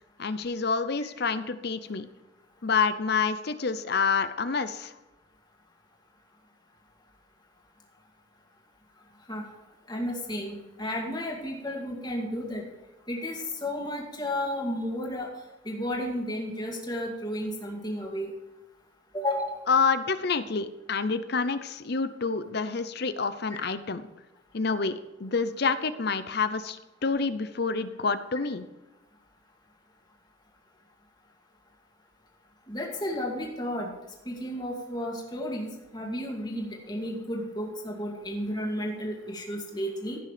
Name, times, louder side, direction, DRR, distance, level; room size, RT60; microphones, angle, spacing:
voice 1, 0.2-2.1 2.6-4.9 19.7-24.0 24.5-28.7, left 5 dB, 55° left, 12 dB, 0.7 m, -28 dB
voice 2, 9.9-12.6 13.1-15.3 15.6-18.3 19.1-19.6 32.7-33.9 34.3-40.2, equal, 20° left, -1 dB, 2.2 m, -32 dB
15.5 x 6.7 x 5.1 m, 1.0 s
head